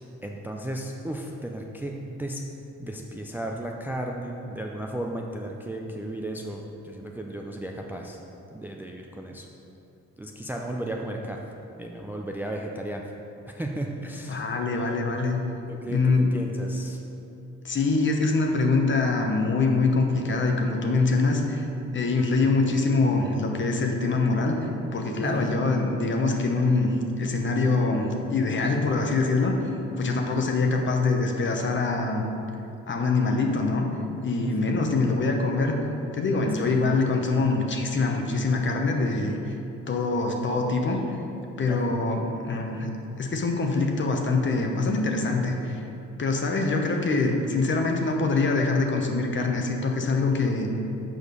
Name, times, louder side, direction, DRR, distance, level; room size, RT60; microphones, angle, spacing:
voice 1, 0.2-2.4 2.8-8.2 8.5-9.5 10.2-11.4 11.8-13.0 13.5-14.4 14.8-15.0 15.7-17.0 25.2-25.6 30.2-30.3 34.4-34.9 36.6-36.8 41.6-42.0, right 1 dB, 5° right, 1 dB, 0.4 m, -34 dB
voice 2, 14.2-15.4 15.9-16.3 17.6-21.7 21.9-29.6 30.0-32.3 32.9-33.9 34.2-35.8 36.1-39.5 39.9-41.2 41.6-42.9 43.2-45.8 46.2-50.7, left 3 dB, 40° left, 2 dB, 1.0 m, -24 dB
6.4 x 5.1 x 5.3 m, 2.9 s
cardioid pair, 90°, 30 cm